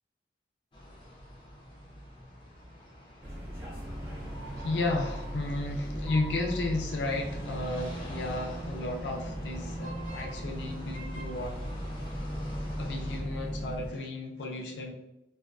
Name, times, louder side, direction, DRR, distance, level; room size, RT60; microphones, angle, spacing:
sound 1, 0.7-13.2, equal, 30° left, 0.5 m, -47 dB
sound 2, 3.2-13.9, equal, 15° right, 0.6 m, -38 dB
voice 1, 4.6-11.8 12.8-14.9, left 2 dB, 85° left, 2 dB, 0.4 m, -33 dB
2.3 x 2.2 x 2.4 m, 0.91 s
head